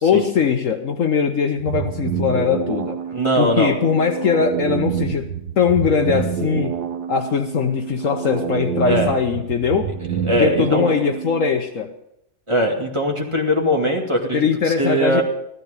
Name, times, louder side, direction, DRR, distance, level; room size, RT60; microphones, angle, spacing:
voice 1, 0.0-3.0 3.3-5.3 5.6-6.7 7.1-9.9 10.4-11.9 14.3-15.2, left 6 dB, 60° left, 5 dB, 1.2 m, -20 dB
sound 1, 1.6-11.6, right 8 dB, 80° right, 1.5 m, -27 dB
voice 2, 3.1-3.7 8.8-9.1 10.2-10.8 12.5-15.2, equal, 20° right, 0 dB, 2.1 m, -20 dB
14.5 x 13.5 x 5.1 m, 0.80 s
omnidirectional pair, 1.7 m